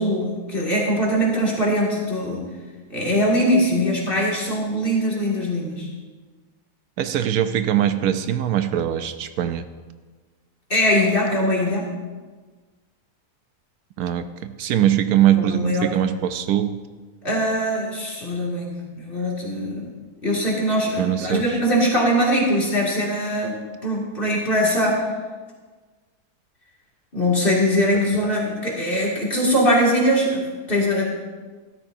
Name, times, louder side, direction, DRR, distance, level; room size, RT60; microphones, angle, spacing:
voice 1, 0.0-2.4 2.9-5.9 10.7-11.9 15.4-15.9 17.2-19.8 20.2-25.0 27.1-31.1, equal, 35° left, -4 dB, 2.5 m, -22 dB
voice 2, 7.0-9.6 14.0-16.8 21.0-21.6, right 11 dB, 75° right, 10 dB, 1.0 m, -22 dB
13.0 x 13.0 x 2.7 m, 1.4 s
omnidirectional pair, 1.6 m